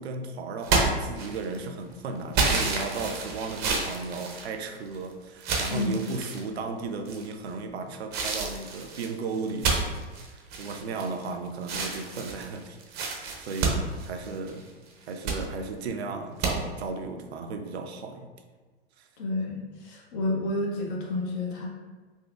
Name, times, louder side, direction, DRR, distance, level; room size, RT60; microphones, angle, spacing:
voice 1, 0.0-14.7 15.1-18.3 19.0-19.1, right 4 dB, 80° right, 6 dB, 0.5 m, -35 dB
sound 1, 0.6-1.6 2.3-5.0 5.4-6.4 7.0-7.5 8.1-11.3 11.6-14.6 15.0-15.4 16.4-16.5, right 4 dB, 30° right, 0.6 m, -29 dB
voice 2, 19.2-21.7, left 2 dB, 55° left, -1 dB, 0.9 m, -30 dB
4.0 x 2.7 x 2.4 m, 1.4 s
hypercardioid pair, 105°, 32 cm